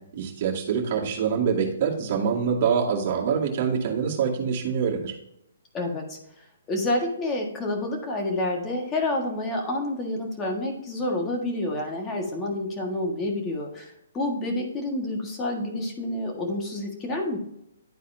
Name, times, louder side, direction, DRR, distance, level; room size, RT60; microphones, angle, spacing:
voice 1, 0.1-5.1, right 6 dB, 40° right, -2 dB, 2.1 m, -25 dB
voice 2, 5.7-17.4, left 1 dB, 15° left, 1 dB, 1.6 m, -29 dB
12.0 x 4.1 x 2.7 m, 0.80 s
hypercardioid pair, 160°, 0 cm